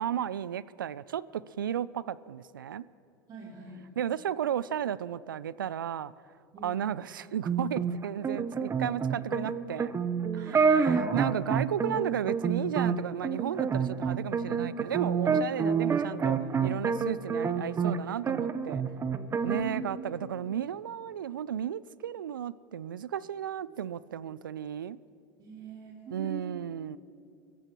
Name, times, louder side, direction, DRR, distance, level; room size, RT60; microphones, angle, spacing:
voice 1, 0.0-2.8 4.0-6.1 6.6-9.9 10.5-18.8 19.4-25.0 26.1-27.0, right 9 dB, 85° right, 0.4 m, -34 dB
voice 2, 3.3-3.8 6.5-6.9 10.3-10.7 19.3-20.0 25.4-26.5, right 5 dB, 40° right, 3.1 m, -41 dB
sound 1, 7.5-18.0 18.3-19.6, right 6 dB, 25° right, 0.7 m, -28 dB
22.5 x 14.5 x 3.0 m
hypercardioid pair, 80°, 11 cm